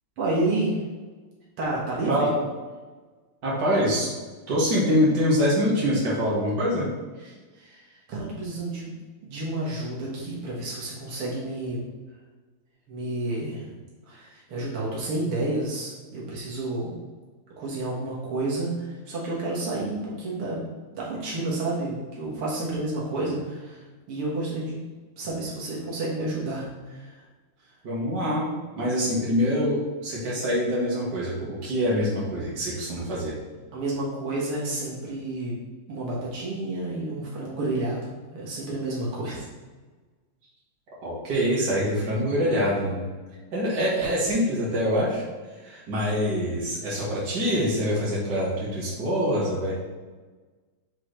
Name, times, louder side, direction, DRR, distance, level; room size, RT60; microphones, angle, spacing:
voice 1, 0.2-0.8 1.6-2.3 7.2-9.0 9.2-11.8 12.9-13.7 14.1-17.0 17.6-20.6 20.9-23.8 24.1-24.8 25.2-27.2 32.7-32.8 33.7-35.6 35.9-39.5, right 2 dB, 90° right, -5 dB, 2.5 m, -30 dB
voice 2, 2.1-2.4 3.4-4.1 4.5-6.9 27.8-28.4 28.7-33.3 41.0-43.0 43.5-45.2 45.6-49.7, equal, 50° right, -6 dB, 2.4 m, -25 dB
7.3 x 4.6 x 3.3 m, 1.3 s
omnidirectional pair, 2.4 m